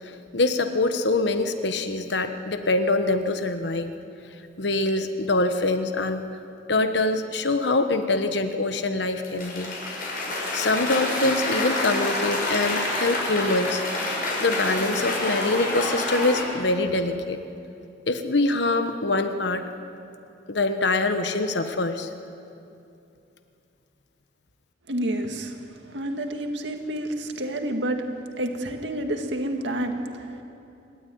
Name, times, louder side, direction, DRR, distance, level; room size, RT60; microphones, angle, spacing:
voice 1, 0.3-3.9 4.6-6.2 6.7-9.7 10.5-13.8 14.4-17.4 18.1-19.6 20.5-22.1, left 2 dB, 70° left, 8 dB, 1.2 m, -24 dB
Cheering / Applause, 9.2-16.4, left 2 dB, 50° left, 6.5 m, -28 dB
voice 2, 24.9-25.6 25.8-28.0 28.4-30.4, right 1 dB, 70° right, 4 dB, 2.1 m, -29 dB
28.0 x 13.0 x 9.4 m, 2.7 s
head